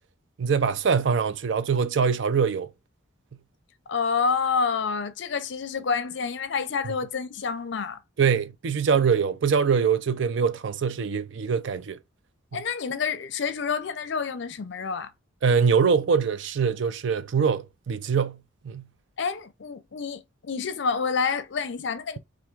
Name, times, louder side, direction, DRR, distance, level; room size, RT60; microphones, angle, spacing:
voice 1, 0.4-2.7 8.2-12.0 15.4-18.4 18.6-18.9, right 6 dB, 65° right, 0.4 m, -23 dB
voice 2, 3.9-8.0 12.5-15.1 19.2-22.2, left 5 dB, 60° left, 0.5 m, -28 dB
3.4 x 2.5 x 4.4 m
head